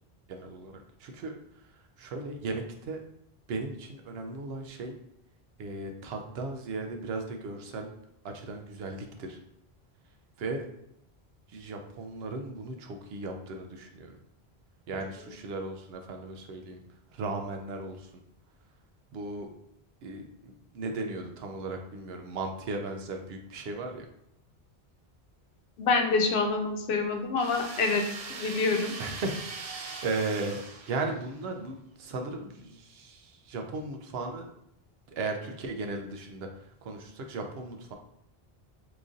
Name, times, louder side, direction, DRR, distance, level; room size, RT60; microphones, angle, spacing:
voice 1, 0.3-1.3 2.0-3.0 3.5-4.9 5.6-7.9 8.2-9.4 10.4-10.7 11.5-14.2 14.9-16.8 17.1-18.1 19.1-19.5 20.0-24.1 29.0-34.5 35.1-36.5 36.8-37.9, right 3 dB, 75° right, 4 dB, 0.8 m, -36 dB
voice 2, 25.8-28.0 28.3-28.9, left 4 dB, 80° left, 4 dB, 0.9 m, -26 dB
sound 1, 27.4-31.5, right 4 dB, 55° right, 0.4 m, -41 dB
3.0 x 2.5 x 3.6 m, 0.76 s
omnidirectional pair, 1.0 m